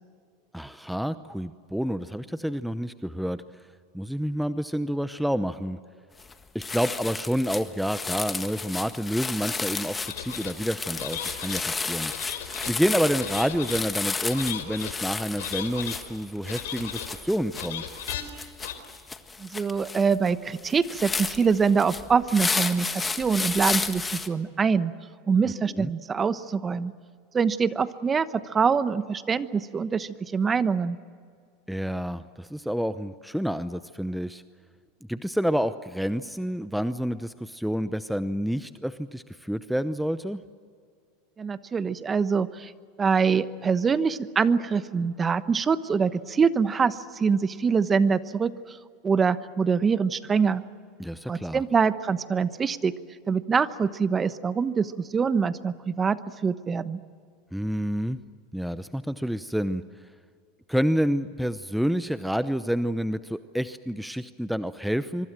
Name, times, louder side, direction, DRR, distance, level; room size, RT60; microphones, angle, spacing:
voice 1, 0.5-3.4 3.9-5.8 6.5-12.1 12.7-17.8 25.8-25.9 31.7-34.4 35.1-40.4 51.0-51.6 57.5-58.2 58.5-59.8 60.7-65.3, equal, ahead, 12 dB, 0.8 m, -28 dB
sound 1, 6.2-6.3 6.6-24.3, left 4 dB, 15° left, 1.6 m, -32 dB
sound 2, 10.0-10.5 11.0-11.6 12.1-12.7 13.2-13.8 14.3-14.9 15.4-16.0 16.4-17.1 17.5-18.2 18.6-18.7, left 10 dB, 80° left, 3.5 m, -36 dB
voice 2, 19.4-24.9 25.3-26.9 27.3-31.0 41.4-42.7 43.0-48.8 49.0-50.6 51.3-52.9 53.3-57.0, right 5 dB, 25° right, 14 dB, 1.1 m, -24 dB
25.0 x 24.0 x 7.6 m, 2.1 s
hypercardioid pair, 100°, 0 cm